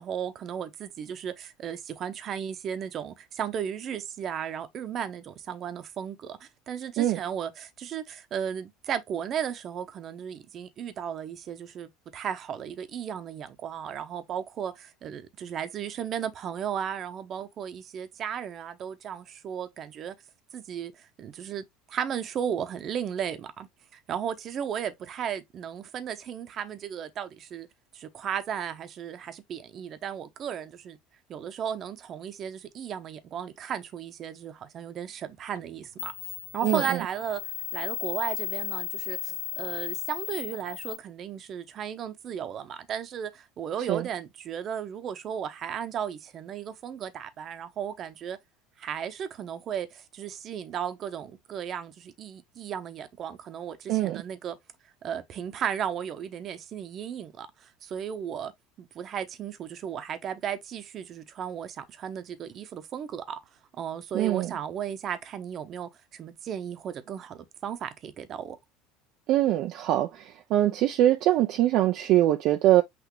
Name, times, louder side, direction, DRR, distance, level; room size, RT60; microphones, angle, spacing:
voice 1, 0.0-20.2 20.5-23.7 24.1-27.7 27.9-31.0 31.3-36.1 36.5-37.4 37.7-48.4 48.8-54.6 55.0-58.5 58.8-63.4 63.8-68.6, right 8 dB, 40° right, 0.9 m, -35 dB
sound 1, 35.6-35.7 36.0-41.0, left 14 dB, 85° left, 0.4 m, -35 dB
voice 2, 53.9-54.2 64.1-64.5 69.3-70.2 70.5-72.8, right 14 dB, 60° right, 0.5 m, -23 dB
6.1 x 2.7 x 3.2 m
supercardioid pair, 110°, 0 cm